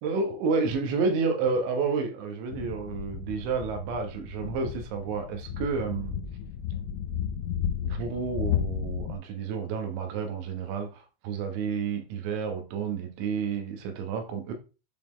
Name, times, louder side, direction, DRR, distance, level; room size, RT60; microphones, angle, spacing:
voice 1, 0.0-6.2 7.8-14.5, right 5 dB, 85° right, 3.7 m, -30 dB
sound 1, 2.5-9.1, left 8 dB, 80° left, 3.0 m, -33 dB
11.0 x 4.2 x 3.2 m
omnidirectional pair, 5.2 m